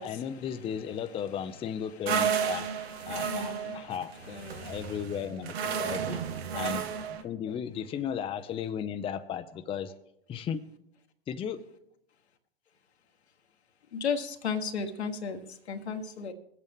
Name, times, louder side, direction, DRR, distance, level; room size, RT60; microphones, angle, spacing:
voice 1, 0.0-2.7 3.1-4.1 4.6-9.9 10.3-10.6 11.3-11.6, left 8 dB, 15° left, 8 dB, 0.6 m, -35 dB
sound 1, 2.1-7.2, right 7 dB, 70° right, 1.2 m, -32 dB
voice 2, 3.1-3.9 4.3-4.8 5.7-5.8 13.9-16.3, left 5 dB, 85° left, 6 dB, 1.4 m, -35 dB
21.0 x 8.5 x 3.6 m, 0.77 s
hypercardioid pair, 115°, 32 cm